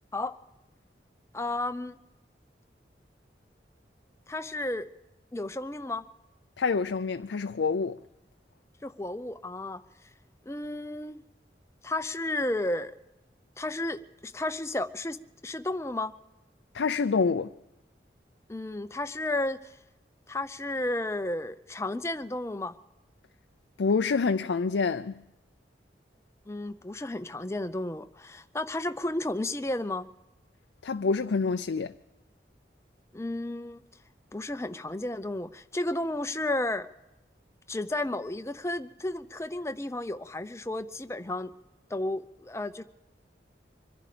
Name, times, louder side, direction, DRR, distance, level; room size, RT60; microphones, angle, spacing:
voice 1, 1.3-2.0 4.3-4.9 5.3-6.0 8.8-9.8 10.5-11.2 11.8-12.9 13.6-15.2 15.4-16.1 18.5-19.7 20.3-22.8 26.5-30.1 33.1-33.8 34.3-36.9 37.7-41.5 41.9-42.8, left 2 dB, 15° left, 0.6 m, -32 dB
voice 2, 6.6-8.0 16.7-17.5 23.8-25.2 30.8-31.9, left 4 dB, 90° left, 0.5 m, -27 dB
25.5 x 11.0 x 5.0 m
head